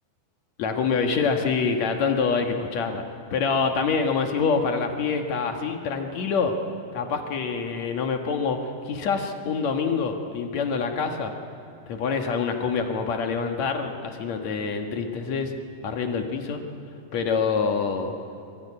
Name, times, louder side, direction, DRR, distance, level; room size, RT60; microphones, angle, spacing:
voice 1, 0.6-3.0 3.3-6.5 6.9-8.6 8.9-11.3 11.9-15.5 15.8-16.6 17.1-18.1, left 5 dB, 55° left, 4 dB, 2.1 m, -26 dB
24.5 x 22.0 x 9.8 m, 2.6 s
omnidirectional pair, 5.0 m